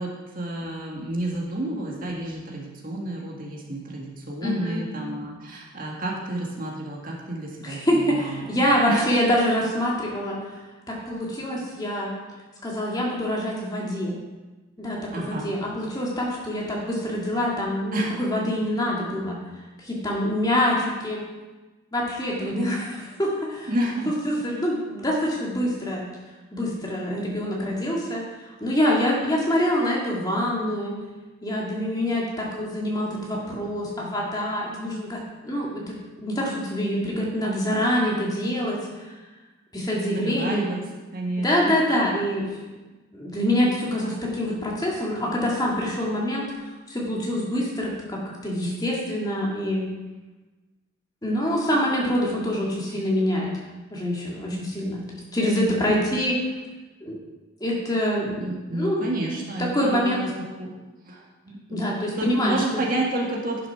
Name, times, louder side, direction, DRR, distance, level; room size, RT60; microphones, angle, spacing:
voice 1, 0.0-7.8 8.2-8.5 8.9-9.1 15.1-15.5 17.9-18.2 22.4-22.8 23.7-24.5 40.1-40.8 41.1-41.5 58.4-60.7 61.0-63.7, right 1 dB, 45° right, -2 dB, 1.8 m, -30 dB
voice 2, 4.4-4.8 7.6-10.6 10.9-12.1 12.6-14.2 14.8-19.4 19.8-21.2 21.9-22.9 23.2-23.7 24.2-26.0 26.5-28.2 28.6-30.9 31.4-39.1 39.7-40.8 41.4-42.7 43.1-46.4 46.9-49.9 51.2-53.5 53.9-56.4 57.0-57.2 57.6-59.0 59.6-60.2 61.7-62.8, equal, 20° left, -3 dB, 2.1 m, -25 dB
10.5 x 6.7 x 5.8 m, 1.2 s
head